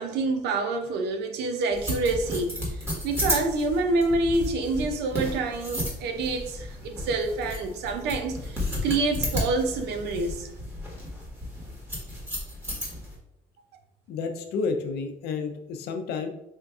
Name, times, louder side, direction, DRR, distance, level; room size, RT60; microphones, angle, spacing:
voice 1, 0.0-10.5, right 3 dB, 80° right, 0.6 m, -27 dB
sound 1, 1.7-13.1, left 1 dB, 15° right, 1.3 m, -33 dB
voice 2, 14.1-16.3, left 4 dB, 75° left, 0.5 m, -30 dB
4.4 x 2.5 x 2.3 m
cardioid pair, 110°, 17 cm